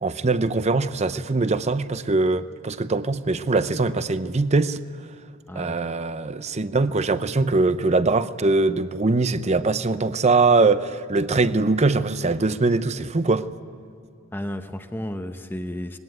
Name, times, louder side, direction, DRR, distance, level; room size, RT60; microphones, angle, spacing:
voice 1, 0.0-4.8 5.6-13.5, right 3 dB, 35° right, 0.7 m, -22 dB
voice 2, 5.5-5.9 14.3-16.0, equal, 10° left, 0.9 m, -33 dB
21.0 x 17.5 x 9.2 m
head